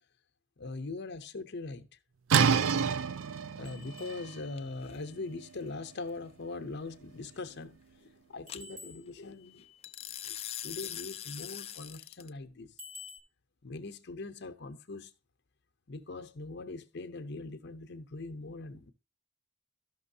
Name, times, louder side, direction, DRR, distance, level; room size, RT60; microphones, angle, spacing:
voice 1, 0.6-1.9 3.6-9.7 10.3-10.4 10.6-12.7 13.6-15.1 15.9-18.9, left 3 dB, 55° left, 0.7 m, -41 dB
sound 1, 2.3-7.9, right 6 dB, 70° right, 0.4 m, -31 dB
sound 2, 3.7-5.5 8.5-9.8 12.8-13.2, left 3 dB, 40° right, 1.7 m, -51 dB
sound 3, 4.6-5.0 8.5-8.6 9.8-12.3, left 11 dB, 30° left, 0.4 m, -41 dB
13.0 x 6.0 x 2.7 m
head